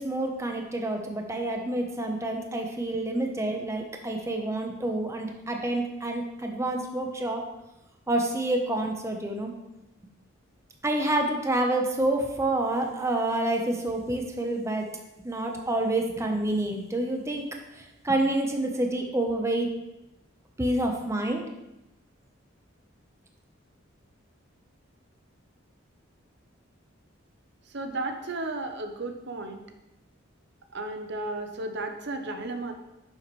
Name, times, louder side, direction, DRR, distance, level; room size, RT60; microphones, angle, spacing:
voice 1, 0.0-7.4 8.1-9.5 10.8-14.9 15.2-17.4 17.8-19.7 20.6-21.4, right 1 dB, 15° right, 2 dB, 0.9 m, -28 dB
voice 2, 27.7-29.6 30.7-32.7, right 2 dB, 55° right, 6 dB, 0.8 m, -33 dB
10.5 x 7.2 x 3.2 m, 0.94 s
head